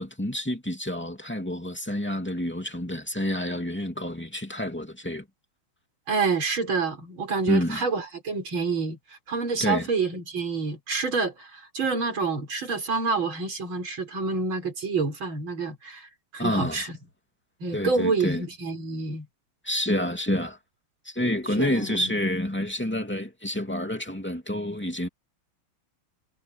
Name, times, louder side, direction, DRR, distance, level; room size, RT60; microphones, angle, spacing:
voice 1, 0.0-5.2 7.5-7.8 9.6-9.9 16.4-16.9 17.7-18.4 19.6-20.6 21.0-25.1, left 1 dB, 5° left, 2.6 m, -28 dB
voice 2, 6.1-9.0 9.3-17.0 17.6-19.3 21.6-22.2, right 4 dB, 65° right, 5.6 m, -28 dB
omnidirectional pair, 2.4 m